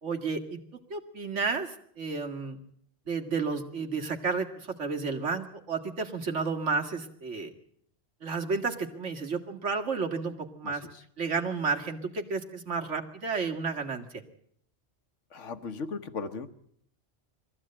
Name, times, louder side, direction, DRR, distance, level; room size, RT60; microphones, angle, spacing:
voice 1, 0.0-0.6 0.9-2.6 3.1-7.5 8.2-10.9 11.2-14.0, right 4 dB, 75° right, 3 dB, 2.3 m, -31 dB
voice 2, 10.6-11.0 15.3-16.5, left 4 dB, 75° left, 11 dB, 1.6 m, -37 dB
22.5 x 15.0 x 8.7 m, 0.69 s
omnidirectional pair, 1.3 m